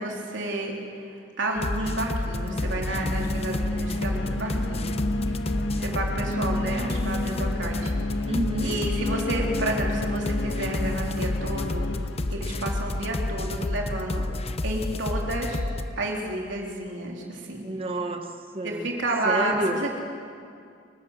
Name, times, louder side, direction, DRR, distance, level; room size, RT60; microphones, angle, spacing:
voice 1, 0.0-4.9 5.7-7.9 8.6-11.9 12.3-14.2 14.6-15.6 16.0-17.6 18.6-19.9, right 1 dB, 75° right, -1 dB, 3.7 m, -30 dB
sound 1, 1.6-15.9, left 2 dB, 35° left, 0.7 m, -30 dB
sound 2, 2.2-13.7, left 2 dB, 90° left, 0.9 m, -32 dB
voice 2, 8.3-8.8 17.6-18.9 19.2-19.9, right 1 dB, 30° right, 6 dB, 1.3 m, -29 dB
28.0 x 12.5 x 7.9 m, 2.4 s
head